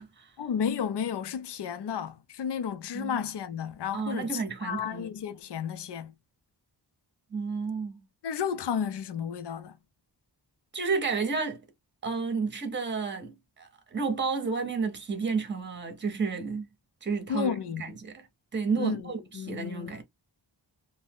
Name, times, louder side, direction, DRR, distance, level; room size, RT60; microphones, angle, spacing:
voice 1, 0.4-6.1 8.2-9.8 17.3-17.8 18.7-20.0, left 7 dB, 65° left, 0.5 m, -32 dB
voice 2, 3.9-5.1 7.3-8.0 10.7-11.6 12.0-16.6 17.0-18.3 18.5-20.0, right 4 dB, 25° right, 0.7 m, -31 dB
2.7 x 2.1 x 3.3 m
wide cardioid pair, 70°, 45 cm